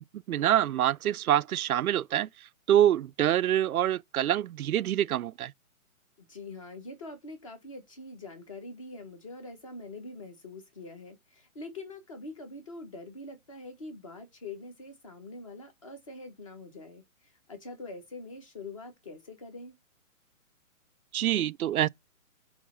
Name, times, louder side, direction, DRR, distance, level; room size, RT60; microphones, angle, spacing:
voice 1, 0.3-2.3 2.7-5.5 21.1-21.9, right 11 dB, 85° right, 0.5 m, -25 dB
voice 2, 6.2-19.8, left 2 dB, 25° left, 1.1 m, -44 dB
8.6 x 3.2 x 5.3 m
hypercardioid pair, 175°, 42 cm